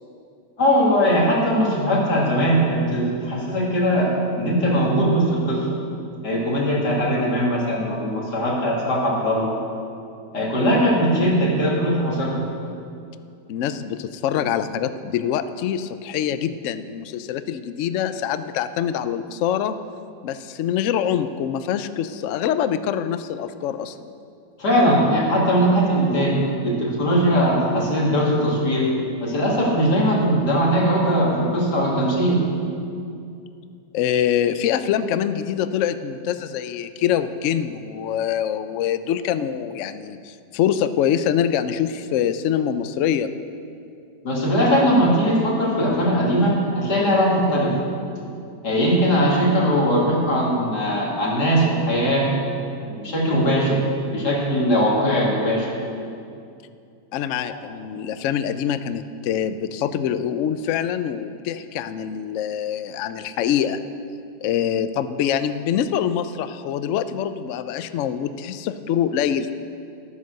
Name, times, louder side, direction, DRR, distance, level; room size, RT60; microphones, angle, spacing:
voice 1, 0.6-4.1 4.4-5.7 6.2-9.5 10.3-12.4 24.6-28.9 29.2-32.4 44.2-47.7 48.6-52.3 52.9-53.8 54.1-55.7 57.4-57.6, equal, 65° left, -5 dB, 3.2 m, -20 dB
voice 2, 13.5-19.8 20.2-24.0 33.9-43.3 57.1-63.8 64.4-69.5, left 9 dB, 90° left, 11 dB, 0.6 m, -24 dB
12.0 x 9.3 x 6.4 m, 2.5 s
omnidirectional pair, 1.9 m